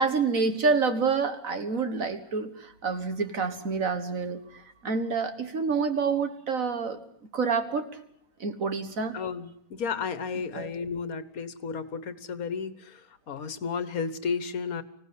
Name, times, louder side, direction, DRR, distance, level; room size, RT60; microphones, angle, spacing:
voice 1, 0.0-7.0 7.3-7.9 8.4-9.2 10.6-10.7, right 4 dB, 65° right, 9 dB, 2.0 m, -28 dB
voice 2, 9.1-14.8, left 5 dB, 70° left, 13 dB, 1.7 m, -33 dB
25.0 x 16.5 x 9.5 m, 0.72 s
omnidirectional pair, 1.6 m